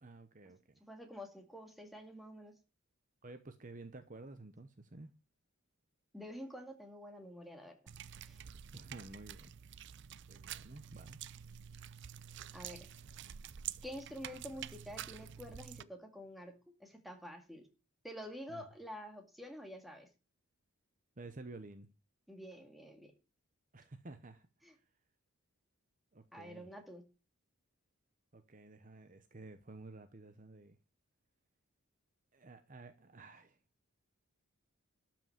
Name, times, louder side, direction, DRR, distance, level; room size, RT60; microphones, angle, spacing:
voice 1, 0.0-0.8 3.2-5.1 8.7-9.5 10.3-11.3 18.5-18.6 21.2-21.9 23.7-24.8 26.1-26.7 28.3-30.8 32.3-33.6, right 2 dB, 35° right, 0.9 m, -52 dB
voice 2, 0.8-2.5 6.1-7.8 8.2-8.4 12.5-12.9 13.8-16.5 16.8-17.7 18.0-20.1 22.3-23.1 24.6-24.7 26.3-27.0, equal, ahead, 2.1 m, -48 dB
sound 1, 7.9-15.8, right 10 dB, 50° right, 0.5 m, -48 dB
12.5 x 6.0 x 7.2 m
head